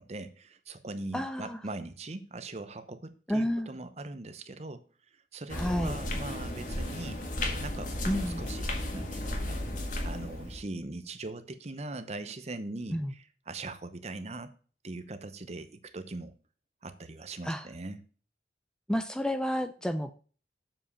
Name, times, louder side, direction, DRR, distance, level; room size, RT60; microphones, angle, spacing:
voice 1, 0.0-4.8 5.3-7.2 7.6-9.6 10.0-14.5 14.8-16.3 16.8-18.1, right 2 dB, 40° right, 11 dB, 0.8 m, -41 dB
voice 2, 1.1-1.6 3.3-3.7 5.5-6.0 8.1-8.4 12.9-13.1 17.4-17.7 18.9-20.1, equal, 5° left, 9 dB, 0.4 m, -30 dB
sound 1, 5.5-10.6, left 1 dB, 45° left, 1.8 m, -34 dB
7.4 x 5.2 x 6.8 m, 0.40 s
head